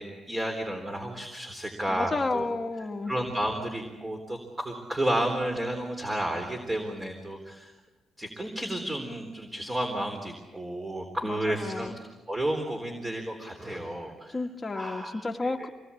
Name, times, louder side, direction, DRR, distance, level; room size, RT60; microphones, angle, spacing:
voice 1, 0.0-2.4 3.1-7.7 8.2-14.4 14.7-15.7, right 1 dB, 15° right, 3 dB, 3.8 m, -32 dB
voice 2, 1.9-3.1 11.2-12.0 14.3-15.7, left 3 dB, 20° left, 1 dB, 1.8 m, -31 dB
26.5 x 20.0 x 8.5 m, 1.2 s
cardioid pair, 125°, 0 cm